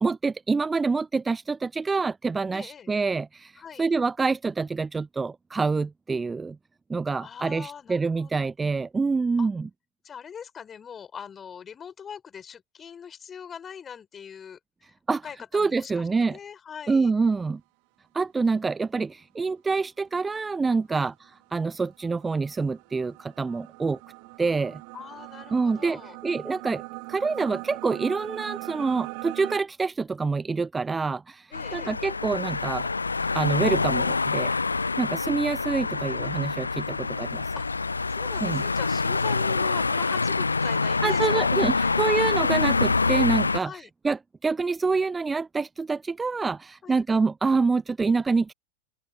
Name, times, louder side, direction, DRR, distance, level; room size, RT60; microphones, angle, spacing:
voice 1, 0.0-6.6 6.9-9.7 15.1-15.2 15.5-16.4 16.9-17.6 18.1-21.1 21.5-24.0 24.4-24.8 25.5-26.8 27.1-32.9 33.3-34.5 35.0-37.5 38.4-38.6 41.0-48.5, right 4 dB, 10° right, 0.3 m, -26 dB
voice 2, 2.5-2.9 3.6-3.9 7.2-8.5 9.4-9.5 10.0-14.6 15.1-17.1 20.9-21.1 24.9-26.2 31.5-31.9 37.6-42.2 43.5-43.9 46.8-47.0, left 7 dB, 20° left, 4.6 m, -42 dB
alien mainframe room, 21.1-29.6, right 40 dB or more, 45° right, 0.8 m, -41 dB
sound 1, 31.5-43.6, left 4 dB, 80° left, 0.3 m, -26 dB
open air
figure-of-eight pair, 90°, 0 cm